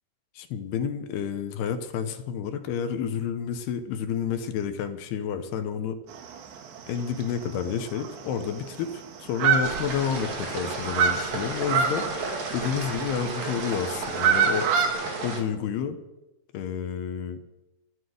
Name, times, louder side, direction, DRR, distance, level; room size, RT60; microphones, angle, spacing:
voice 1, 0.4-6.0 6.9-15.0 15.2-16.0 16.5-17.4, left 7 dB, 75° left, 8 dB, 2.7 m, -30 dB
sound 1, 6.1-6.8 7.1-7.2 7.6-7.7 7.9-8.9 9.3-10.4 10.6-13.2 13.8-14.9, right 7 dB, 75° right, 3.7 m, -25 dB
sound 2, 9.6-15.4, right 3 dB, 45° right, 3.0 m, -33 dB
13.0 x 9.7 x 7.8 m, 1.0 s
omnidirectional pair, 5.2 m